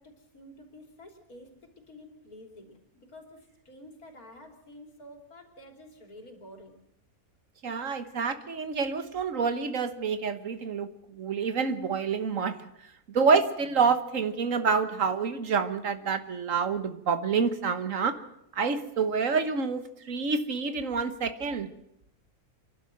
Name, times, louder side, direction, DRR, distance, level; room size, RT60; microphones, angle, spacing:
voice 1, 0.0-6.7, left 1 dB, 75° left, 4 dB, 3.8 m, -50 dB
voice 2, 7.6-12.6 13.1-18.2 18.5-21.7, right 5 dB, 60° right, 11 dB, 1.6 m, -27 dB
28.5 x 12.0 x 7.7 m, 0.81 s
omnidirectional pair, 1.5 m